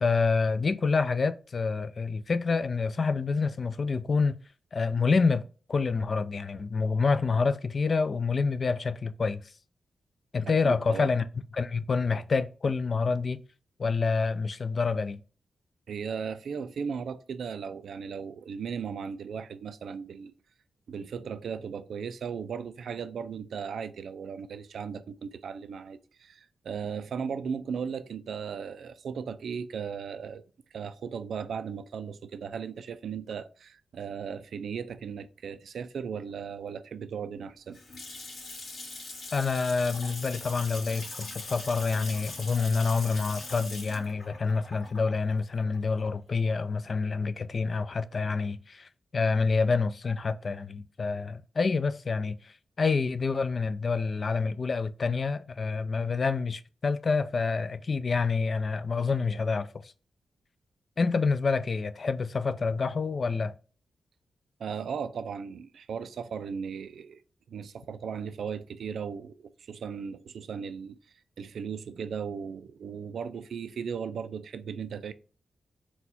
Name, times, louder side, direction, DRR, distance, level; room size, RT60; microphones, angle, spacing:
voice 1, 0.0-4.3 4.7-9.4 10.3-13.4 13.8-15.2 39.3-59.9 61.0-63.5, left 4 dB, 45° left, 0.3 m, -27 dB
voice 2, 10.6-11.1 15.9-20.3 20.9-30.4 30.7-37.8 64.6-67.2 67.5-71.0 71.4-75.1, right 6 dB, 80° right, 0.3 m, -37 dB
Water tap faucet / Sink (filling or washing) / Splash splatter, 37.5-46.4, left 2 dB, 65° left, 2.0 m, -41 dB
4.2 x 2.3 x 4.1 m
cardioid pair, 100°, 0 cm